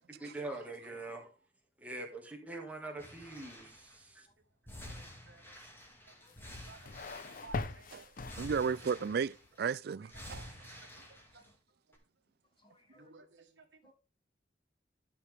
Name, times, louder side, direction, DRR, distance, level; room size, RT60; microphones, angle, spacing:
voice 1, 0.2-1.3 1.8-4.3, right 2 dB, 10° right, 2.0 m, -43 dB
voice 2, 2.5-2.9 4.8-5.4 6.5-7.9 8.4-8.5 9.9-10.3 10.7-10.8 12.9-13.6, right 3 dB, 75° right, 1.5 m, -57 dB
sound 1, 3.0-4.0 4.7-7.7 8.2-9.6 10.1-11.5 11.9-12.0, left 1 dB, 10° left, 2.2 m, -50 dB
voice 3, 6.2-6.6 11.4-11.5 12.6-13.1 13.8-13.9, left 2 dB, 30° left, 1.6 m, -66 dB
sound 2, 6.3-9.0, left 3 dB, 50° left, 0.7 m, -42 dB
voice 4, 8.3-10.5, right 6 dB, 60° right, 0.3 m, -34 dB
11.5 x 5.9 x 3.4 m
head